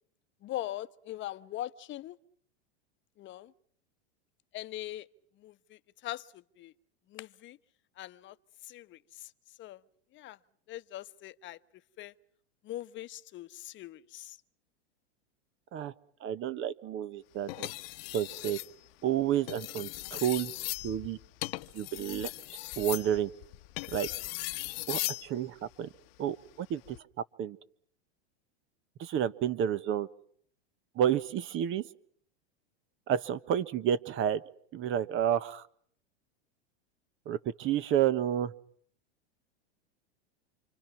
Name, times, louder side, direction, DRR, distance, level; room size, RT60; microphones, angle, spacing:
voice 1, 0.4-2.2 3.2-3.5 4.5-5.1 5.4-6.7 7.1-7.6 8.0-8.4 8.6-9.3 9.6-9.8 10.1-10.4 10.7-11.6 12.0-12.1 12.6-14.4, left 14 dB, 35° left, 1.1 m, -41 dB
voice 2, 16.2-17.7 18.1-18.6 19.0-20.5 20.8-21.2 21.7-22.3 22.8-23.3 23.9-24.1 24.9-25.9 26.2-27.0 27.4-27.6 29.0-30.1 30.9-31.9 33.1-34.4 34.7-35.6 37.3-38.5, right 10 dB, 35° right, 1.2 m, -30 dB
sound 1, 17.5-18.7 19.4-25.3 26.7-27.0, left 21 dB, 60° left, 1.1 m, -38 dB
28.5 x 26.0 x 6.0 m
hypercardioid pair, 110°, 33 cm